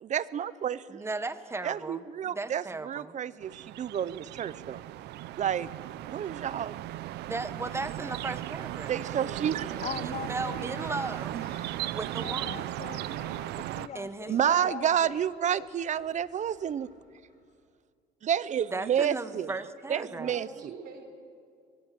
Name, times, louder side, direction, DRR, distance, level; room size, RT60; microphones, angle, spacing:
voice 1, 0.0-1.0 1.6-4.8 5.4-5.7 6.1-6.7 8.9-9.7 11.3-11.4 14.3-16.9 18.2-19.5 19.9-20.7, right 9 dB, 45° right, 18 dB, 0.8 m, -30 dB
voice 2, 0.9-2.0 2.3-3.2 7.2-8.9 10.0-11.3 11.9-12.8 13.9-14.7 18.7-20.3, right 3 dB, 15° right, 13 dB, 1.2 m, -36 dB
sound 1, 3.4-13.9, right 15 dB, 80° right, 0.7 m, -37 dB
sound 2, 8.4-17.5, left 5 dB, 70° left, 7.7 m, -57 dB
voice 3, 8.9-10.2 10.5-10.9 19.8-21.0, right 4 dB, 65° right, 5 dB, 5.1 m, -46 dB
voice 4, 9.8-10.9 12.2-15.3, left 8 dB, 40° left, 17 dB, 0.7 m, -42 dB
24.0 x 22.0 x 7.7 m, 2.2 s
cardioid pair, 110°, 17 cm